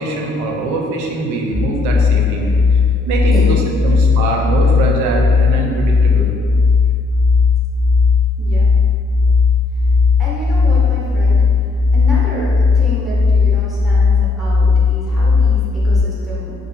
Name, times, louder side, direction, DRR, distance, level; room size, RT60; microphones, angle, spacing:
voice 1, 0.0-2.8 3.1-6.3, right 3 dB, 75° right, 0 dB, 0.4 m, -22 dB
sound 1, 1.5-16.0, left 4 dB, 70° left, 0.5 m, -15 dB
voice 2, 3.3-3.9 8.4-8.8 9.7-9.8 10.2-16.6, equal, ahead, -8 dB, 0.4 m, -29 dB
2.7 x 2.4 x 2.3 m, 2.4 s
cardioid pair, 175°, 30 cm